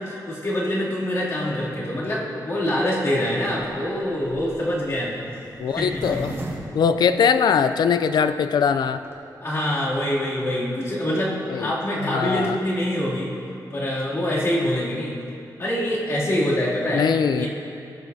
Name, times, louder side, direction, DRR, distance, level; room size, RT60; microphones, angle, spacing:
voice 1, 0.0-5.3 5.7-6.2 9.4-13.3 13.7-15.1 15.6-17.1 17.3-17.5, left 1 dB, 40° left, -8 dB, 2.6 m, -25 dB
Zipper (clothing), 3.4-7.7 8.2-8.3 8.5-8.6 8.8-9.2, right 2 dB, 35° right, 1.6 m, -37 dB
voice 2, 5.6-6.4 6.7-9.0 11.5-12.6 16.9-17.5, left 6 dB, 75° left, 11 dB, 0.3 m, -21 dB
19.0 x 7.4 x 2.7 m, 2.6 s
wide cardioid pair, 140°, 7 cm